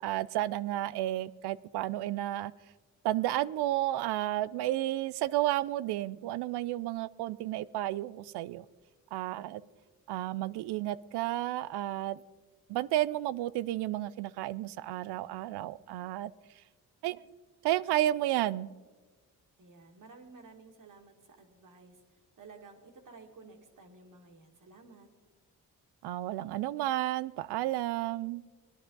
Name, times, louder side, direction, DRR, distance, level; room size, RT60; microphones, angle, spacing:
voice 1, 0.0-2.5 3.0-8.7 9.1-9.6 10.1-12.2 12.7-16.3 17.0-17.2 17.6-18.7 26.0-28.4, right 14 dB, 90° right, 18 dB, 0.5 m, -32 dB
voice 2, 19.6-25.1, right 4 dB, 55° right, 4 dB, 2.1 m, -54 dB
19.0 x 11.0 x 3.9 m, 1.3 s
cardioid pair, 60°, 39 cm